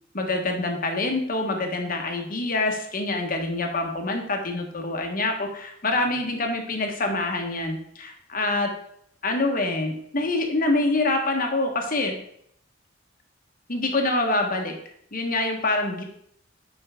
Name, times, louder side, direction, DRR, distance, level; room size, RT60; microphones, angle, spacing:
voice 1, 0.1-8.7 9.2-12.2 13.7-14.7 15.1-16.0, left 2 dB, 45° left, 3 dB, 1.3 m, -26 dB
8.9 x 5.5 x 3.6 m, 0.69 s
head